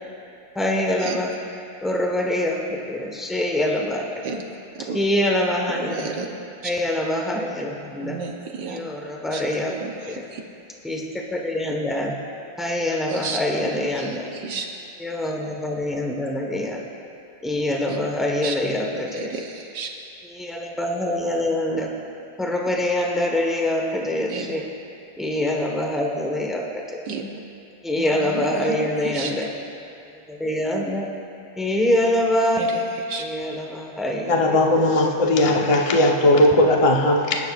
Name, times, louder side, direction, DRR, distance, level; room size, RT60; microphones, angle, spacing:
voice 1, 0.5-1.3 1.8-2.6 2.9-4.2 4.9-6.1 6.6-8.2 8.7-9.7 10.0-10.2 10.8-12.1 12.6-14.3 15.0-16.8 17.4-19.3 20.3-21.9 22.4-24.6 25.2-27.0 27.8-29.5 30.3-31.1 31.6-32.6 33.2-34.6, left 1 dB, ahead, 0 dB, 0.7 m, -24 dB
voice 2, 5.7-6.3 6.6-6.7 8.0-8.8 9.3-10.4 13.1-14.7 17.9-18.0 18.4-18.5 18.9-19.9 24.3-24.5 27.1-27.2 27.9-29.5 32.6-33.3, right 5 dB, 65° right, 2 dB, 1.5 m, -33 dB
voice 3, 34.3-37.4, left 1 dB, 45° left, 1 dB, 0.4 m, -18 dB
21.5 x 11.5 x 2.5 m, 2.6 s
omnidirectional pair, 2.2 m